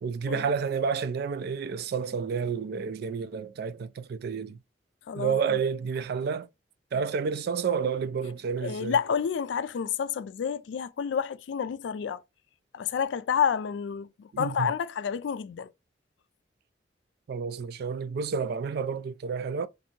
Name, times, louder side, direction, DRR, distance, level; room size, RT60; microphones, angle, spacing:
voice 1, 0.0-4.6 5.1-6.5 6.9-9.0 14.3-14.7 17.3-19.7, right 6 dB, 60° right, 0.3 m, -30 dB
voice 2, 5.1-5.6 8.6-12.2 12.7-15.7, left 7 dB, 80° left, 0.3 m, -29 dB
2.7 x 2.6 x 4.3 m
head